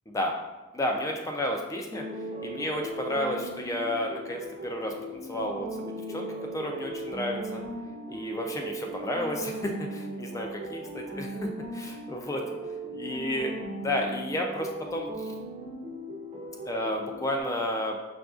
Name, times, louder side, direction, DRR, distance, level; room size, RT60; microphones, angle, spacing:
voice 1, 0.7-2.1 2.4-7.6 8.1-12.5 12.9-15.3 16.7-18.0, left 1 dB, 15° left, 2 dB, 0.3 m, -32 dB
sound 1, 1.9-17.4, right 1 dB, 35° right, 0.5 m, -38 dB
5.7 x 2.5 x 2.3 m, 1.2 s
head